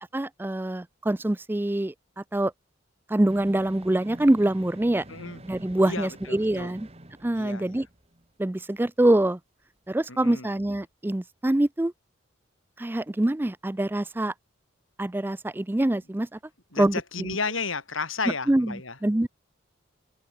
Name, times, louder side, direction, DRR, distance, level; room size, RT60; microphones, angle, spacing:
voice 1, 0.1-2.5 3.1-5.0 5.4-6.9 7.2-7.9 8.4-9.4 9.9-11.9 12.8-14.3 15.0-16.4 16.8-17.4 18.5-19.3, right 1 dB, 10° right, 0.4 m, -25 dB
sound 1, 3.3-8.2 8.6-8.7, right 1 dB, 30° right, 2.1 m, -47 dB
voice 2, 5.1-5.4 5.8-6.7 7.3-7.8 10.1-10.5 16.7-19.0, left 4 dB, 90° left, 6.4 m, -33 dB
head